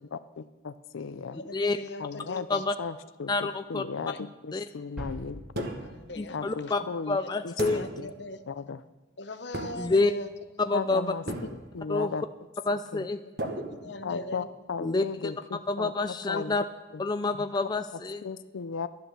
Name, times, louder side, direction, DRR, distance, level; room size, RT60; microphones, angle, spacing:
voice 1, 0.0-1.4 2.0-5.7 6.3-7.2 7.4-7.5 8.0-8.1 8.5-8.8 10.7-11.2 11.5-12.2 12.7-13.1 14.0-15.9 16.3-16.5 16.9-17.0 17.3-17.7 18.2-18.9, left 5 dB, 85° left, 12 dB, 0.5 m, -36 dB
voice 2, 1.3-2.6 4.1-4.2 5.8-6.5 7.1-8.4 9.2-10.3 11.3-11.4 13.7-14.5 16.3-16.4, left 2 dB, 60° left, 10 dB, 0.8 m, -40 dB
voice 3, 3.3-3.8 4.5-4.6 6.2-6.8 7.1-7.8 9.8-10.1 10.6-11.1 11.9-12.1 12.7-13.5 14.8-15.3 15.7-16.6 17.0-18.2, left 3 dB, 20° left, 9 dB, 0.3 m, -28 dB
sound 1, 5.0-7.0, equal, 5° right, 2.4 m, -42 dB
sound 2, 5.6-6.1 7.6-8.2 9.5-10.1 11.3-11.9 13.4-14.4, right 1 dB, 55° right, 1.3 m, -36 dB
12.0 x 11.0 x 6.7 m, 1.2 s
head